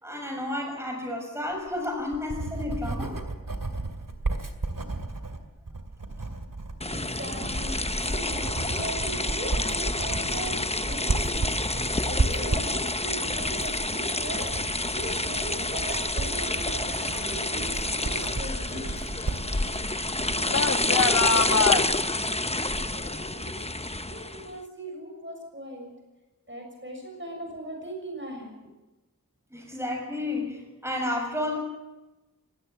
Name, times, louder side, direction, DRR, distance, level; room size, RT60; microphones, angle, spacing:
voice 1, 0.0-3.1 29.5-31.6, left 1 dB, 10° right, 1 dB, 6.7 m, -31 dB
Writing, 1.7-20.4, right 2 dB, 75° right, 2.4 m, -34 dB
sound 1, 6.8-24.5, left 2 dB, 20° left, 0.9 m, -28 dB
voice 2, 6.9-11.5 12.0-19.1 20.3-23.5 24.1-25.9 26.5-28.5, equal, 35° right, 1 dB, 6.7 m, -39 dB
sound 2, 8.6-9.3 10.5-10.8 11.3-11.8 12.4-12.9 13.2-17.5 17.8-21.9, left 5 dB, 55° left, 1.2 m, -31 dB
23.5 x 18.5 x 7.3 m, 1.1 s
wide cardioid pair, 50°, 34 cm